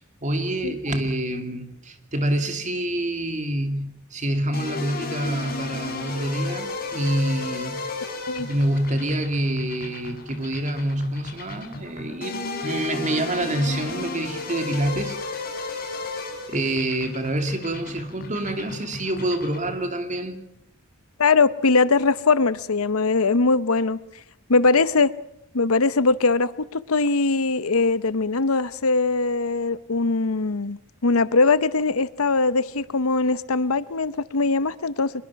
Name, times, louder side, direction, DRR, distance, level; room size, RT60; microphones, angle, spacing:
voice 1, 0.0-8.0 8.5-15.2 16.5-20.4, right 1 dB, 35° right, 7 dB, 2.7 m, -27 dB
sound 1, 4.5-19.9, left 3 dB, 45° left, 6.4 m, -34 dB
voice 2, 21.2-24.0 24.5-25.1 25.5-35.2, left 3 dB, 75° left, 16 dB, 0.9 m, -21 dB
24.5 x 22.5 x 5.8 m, 0.79 s
head